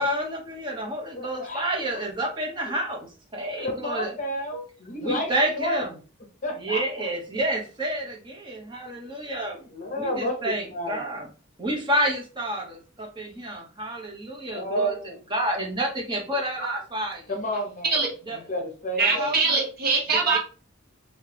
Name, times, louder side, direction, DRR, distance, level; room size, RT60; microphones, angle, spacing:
voice 1, 0.0-3.1 3.3-4.1 5.0-6.0 6.6-9.6 10.0-11.3 11.6-17.2 18.3-18.4 19.0-19.7 20.1-20.4, right 1 dB, 20° right, 0 dB, 0.9 m, -29 dB
voice 2, 1.1-1.7 2.7-2.8 3.6-5.8 6.4-6.8 9.7-10.4 10.7-11.1 14.5-15.2 17.3-17.9 18.5-19.3, equal, 35° left, 3 dB, 0.7 m, -30 dB
voice 3, 19.0-20.4, right 4 dB, 45° right, -2 dB, 1.3 m, -23 dB
3.2 x 2.8 x 3.3 m, 0.37 s
head